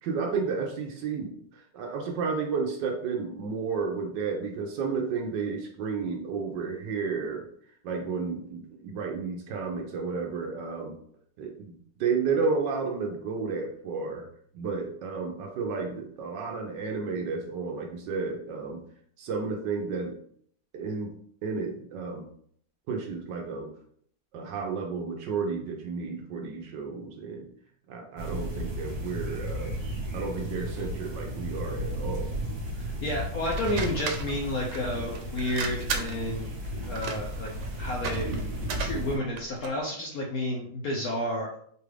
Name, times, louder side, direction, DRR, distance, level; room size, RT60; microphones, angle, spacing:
voice 1, 0.0-7.4 7.8-11.0 11.4-14.3 14.5-18.8 19.2-20.2 20.7-21.1 21.4-22.2 22.9-23.7 24.3-27.5 27.9-29.7 30.1-32.3, right 5 dB, 70° right, 2 dB, 1.2 m, -32 dB
sound 1, 28.2-39.2, equal, 55° right, 1.5 m, -34 dB
voice 2, 32.8-36.5 36.8-37.5 37.8-38.3 38.8-41.6, left 1 dB, 65° left, -2 dB, 0.9 m, -31 dB
sound 2, 33.4-39.8, right 5 dB, 90° right, 1.4 m, -37 dB
4.9 x 2.4 x 3.2 m, 0.63 s
omnidirectional pair, 2.2 m